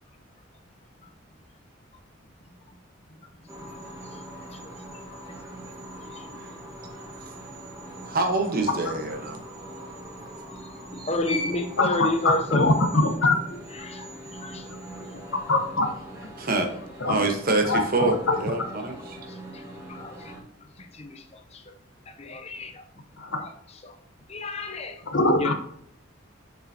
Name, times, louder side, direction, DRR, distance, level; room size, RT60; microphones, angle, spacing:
voice 1, 3.2-3.7 4.0-4.2 4.5-5.0 5.4-5.6 6.1-6.4 11.1-12.7 13.7-14.1 14.4-14.6 19.3-20.3 20.8-21.6 22.1-22.8 23.4-24.0 24.3-25.0 25.4-25.5, left 2 dB, 30° left, 6 dB, 0.6 m, -32 dB
sound 1, 3.5-20.4, equal, 15° right, 1.7 m, -41 dB
voice 2, 8.1-9.4 11.0-11.1 16.4-16.7 17.1-19.2, right 2 dB, 45° right, 4 dB, 1.1 m, -26 dB
voice 3, 12.2-13.4 15.5-15.9 17.0-17.2 17.7-17.8 23.3-23.4 25.1-25.5, left 2 dB, 70° left, 5 dB, 1.0 m, -21 dB
6.8 x 6.6 x 2.8 m, 0.70 s
head